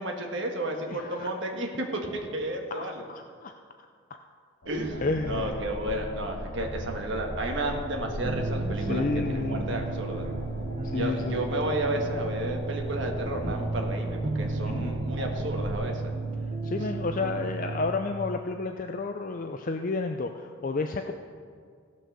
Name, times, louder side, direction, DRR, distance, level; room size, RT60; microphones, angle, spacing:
voice 1, 0.0-3.1 4.6-10.2 10.9-16.1, right 1 dB, 60° right, 2 dB, 1.5 m, -32 dB
voice 2, 0.9-1.3 2.8-3.5 5.0-5.6 8.6-9.8 10.9-11.4 14.6-15.0 16.6-21.1, left 3 dB, 40° left, 6 dB, 0.4 m, -31 dB
sound 1, 4.6-15.7, equal, 65° left, 2.0 m, -38 dB
sound 2, 8.2-17.9, right 3 dB, 30° right, 0.8 m, -33 dB
15.5 x 6.3 x 6.7 m, 2.1 s
head